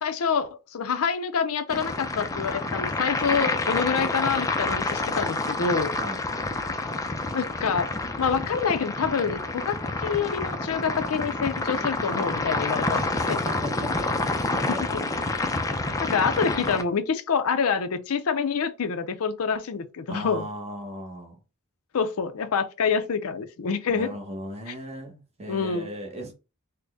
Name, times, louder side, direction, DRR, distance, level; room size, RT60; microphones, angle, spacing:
voice 1, 0.0-5.9 7.3-7.9 8.2-13.4 14.9-15.0 15.3-15.5 16.0-20.5 21.9-24.2 24.7-24.8 25.5-25.9, left 6 dB, 70° left, 0.5 m, -27 dB
sound 1, 1.7-16.8, left 2 dB, 15° left, 0.4 m, -28 dB
voice 2, 12.9-14.8 20.1-21.4 23.9-26.3, equal, 30° right, 0.9 m, -37 dB
3.9 x 2.1 x 3.4 m
head